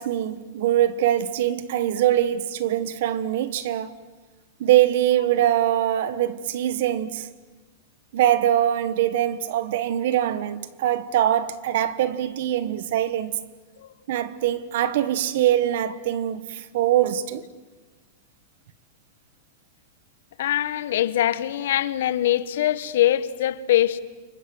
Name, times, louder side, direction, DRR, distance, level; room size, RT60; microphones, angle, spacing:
voice 1, 0.0-3.9 4.6-7.3 8.1-13.3 14.1-17.4, right 12 dB, 60° right, 1.4 m, -23 dB
voice 2, 20.4-24.0, left 12 dB, 75° left, 1.3 m, -22 dB
29.5 x 24.5 x 8.0 m
supercardioid pair, 175°, 0 cm